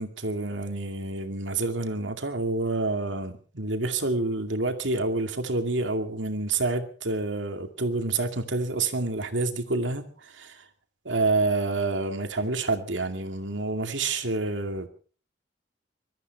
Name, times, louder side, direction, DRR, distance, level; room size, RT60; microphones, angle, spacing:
voice 1, 0.0-10.6 11.0-14.9, right 3 dB, 85° right, 6 dB, 2.4 m, -28 dB
22.5 x 13.5 x 4.6 m, 0.40 s
head